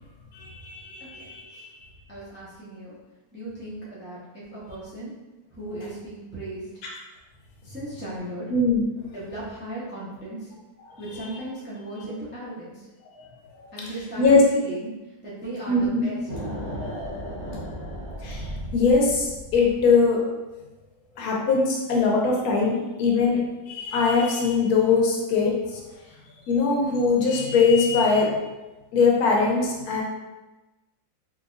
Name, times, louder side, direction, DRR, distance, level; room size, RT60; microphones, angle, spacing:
voice 1, 0.3-1.6 8.5-8.8 13.2-13.3 13.6-13.7 14.2-14.4 15.7-16.1 18.2-20.2 21.2-23.4 23.7-25.8 26.5-28.4 28.9-30.0, left 4 dB, 75° left, -2 dB, 1.1 m, -21 dB
voice 2, 2.1-2.9 3.3-5.1 5.5-6.8 7.6-8.5 9.1-10.5 11.0-12.9 13.7-16.2, right 1 dB, 15° right, -8 dB, 0.4 m, -37 dB
sound 1, 16.3-20.0, equal, 40° right, 1.1 m, -35 dB
3.8 x 2.7 x 2.5 m, 1.1 s
omnidirectional pair, 1.7 m